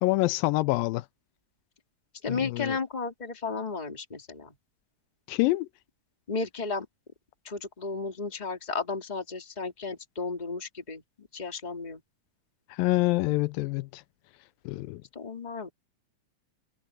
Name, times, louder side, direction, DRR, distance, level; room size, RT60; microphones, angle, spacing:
voice 1, 0.0-1.1 2.3-2.8 5.3-5.7 12.7-14.0 14.7-15.0, left 20 dB, 85° left, 2.3 m, -26 dB
voice 2, 2.2-4.5 6.3-6.9 7.4-12.0 15.1-15.7, left 4 dB, 15° left, 2.0 m, -34 dB
omnidirectional pair, 4.0 m